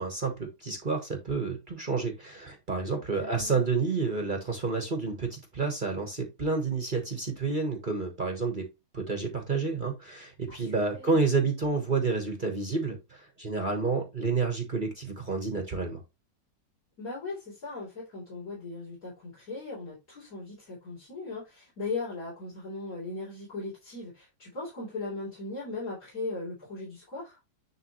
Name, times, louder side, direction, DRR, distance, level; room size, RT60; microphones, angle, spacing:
voice 1, 0.0-8.7 8.9-16.0, right 4 dB, 30° right, 1.2 m, -29 dB
voice 2, 3.2-3.6 10.5-11.2 17.0-27.4, left 3 dB, 50° left, 4.2 m, -38 dB
10.0 x 3.4 x 3.1 m
omnidirectional pair, 1.9 m